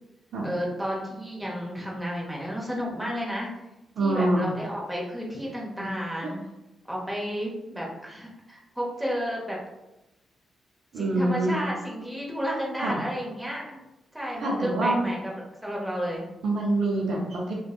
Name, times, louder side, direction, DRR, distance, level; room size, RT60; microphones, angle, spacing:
voice 1, 0.4-3.5 4.0-6.4 6.9-9.6 10.9-13.8 14.1-16.2, equal, 5° right, -4 dB, 0.9 m, -32 dB
voice 2, 4.0-4.5 5.8-5.9 10.9-11.5 12.8-13.0 14.4-15.1 16.4-17.5, right 2 dB, 70° right, -2 dB, 0.5 m, -25 dB
2.5 x 2.1 x 2.3 m, 0.95 s
supercardioid pair, 50°, 0 cm